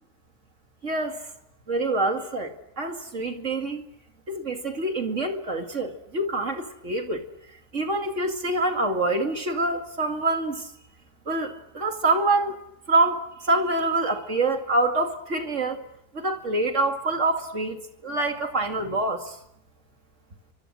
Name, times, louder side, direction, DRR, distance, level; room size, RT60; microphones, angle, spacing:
voice 1, 0.8-1.3 1.7-3.8 4.3-7.3 7.7-10.7 11.3-12.6 12.9-15.8 16.1-17.8 18.0-19.4, right 2 dB, 50° right, 5 dB, 2.7 m, -26 dB
29.5 x 25.0 x 6.3 m, 0.81 s
omnidirectional pair, 1.7 m